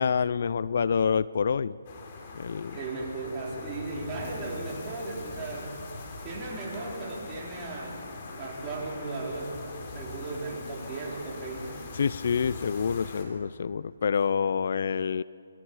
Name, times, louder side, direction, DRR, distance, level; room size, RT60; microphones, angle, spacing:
voice 1, 0.0-1.8 2.3-2.8 11.9-15.2, left 6 dB, 55° left, 19 dB, 0.4 m, -27 dB
sound 1, 1.8-13.2, left 3 dB, 40° left, 3.7 m, -42 dB
voice 2, 2.7-5.8 6.2-9.6 9.9-11.8, right 3 dB, 20° right, -4 dB, 4.4 m, -36 dB
26.5 x 22.0 x 4.8 m, 2.5 s
hypercardioid pair, 150°, 0 cm